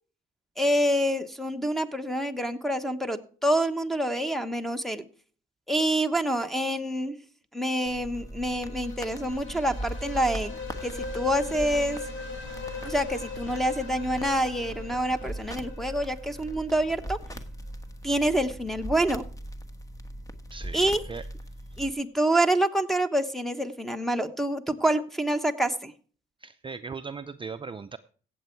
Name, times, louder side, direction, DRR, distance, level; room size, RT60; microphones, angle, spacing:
voice 1, 0.6-5.0 5.7-7.2 7.5-12.0 12.8-17.2 18.0-19.2 20.7-21.0 21.8-25.9, right 1 dB, ahead, 11 dB, 1.1 m, -27 dB
sound 1, 7.9-21.9, equal, 15° left, 1.3 m, -40 dB
sound 2, 8.3-17.1, left 4 dB, 80° left, 3.3 m, -40 dB
voice 2, 20.5-21.3 21.7-21.8 26.4-28.0, right 5 dB, 25° right, 10 dB, 0.5 m, -39 dB
16.5 x 7.9 x 4.5 m, 0.43 s
cardioid pair, 90°, 20 cm